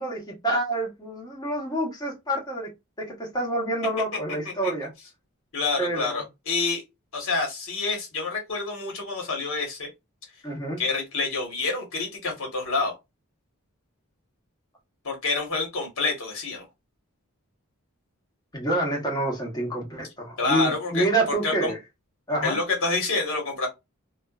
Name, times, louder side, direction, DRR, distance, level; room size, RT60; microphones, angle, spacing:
voice 1, 0.0-2.7 3.0-4.9 5.8-6.2 10.4-10.8 18.5-21.8 22.3-22.6, right 1 dB, 20° left, 0.9 m, -27 dB
voice 2, 5.5-6.8 7.1-9.9 10.8-12.9 15.0-16.7 20.4-21.7 22.4-23.7, left 3 dB, 65° left, 1.3 m, -27 dB
2.5 x 2.2 x 2.3 m
head